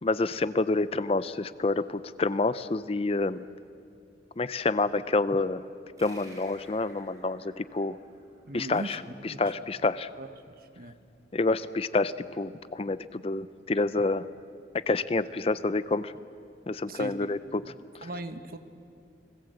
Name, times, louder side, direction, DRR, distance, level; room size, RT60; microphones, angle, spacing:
voice 1, 0.0-3.5 4.4-5.6 6.0-8.0 8.5-10.1 11.3-14.3 14.7-16.1 16.7-17.6, left 3 dB, 30° left, 15 dB, 0.5 m, -28 dB
sound 1, 6.0-9.0, right 1 dB, 20° right, 5.7 m, -54 dB
voice 2, 8.4-9.0 9.2-9.4 10.2-10.3 10.6-11.0 16.9-17.1 18.0-18.6, right 1 dB, 55° right, 9 dB, 1.3 m, -38 dB
30.0 x 20.0 x 7.9 m, 2.5 s
head